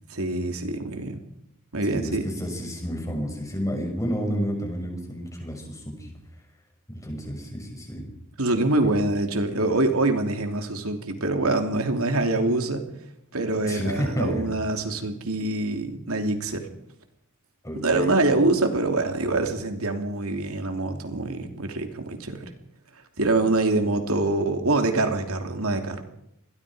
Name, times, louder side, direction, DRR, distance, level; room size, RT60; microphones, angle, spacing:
voice 1, 0.1-1.2 1.7-2.2 8.4-12.8 13.3-16.7 17.7-22.4 23.2-26.0, right 2 dB, 80° right, 5 dB, 3.0 m, -25 dB
voice 2, 1.9-6.1 6.9-8.1 8.8-9.0 13.7-14.5 17.6-18.2, equal, 15° left, 2 dB, 6.4 m, -30 dB
27.0 x 21.5 x 5.1 m, 0.78 s
head